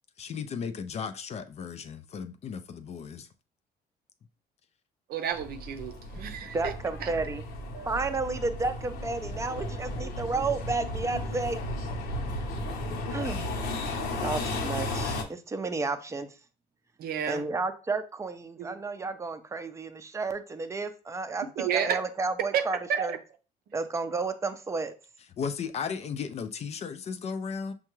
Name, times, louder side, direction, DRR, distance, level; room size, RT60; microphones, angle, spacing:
voice 1, 0.2-3.3 25.4-27.7, left 6 dB, 40° left, 0.4 m, -35 dB
voice 2, 5.1-6.7 7.0-7.1 17.0-17.5 18.6-18.7 21.6-22.0 22.5-23.2, right 8 dB, 65° right, 0.6 m, -31 dB
sound 1, 5.3-15.2, left 1 dB, 70° left, 1.0 m, -34 dB
voice 3, 6.4-7.4 7.8-11.6 13.1-13.9 14.2-16.3 17.3-23.2 23.7-24.9, right 3 dB, 15° right, 0.5 m, -32 dB
5.5 x 2.3 x 3.0 m
cardioid pair, 110°, 17 cm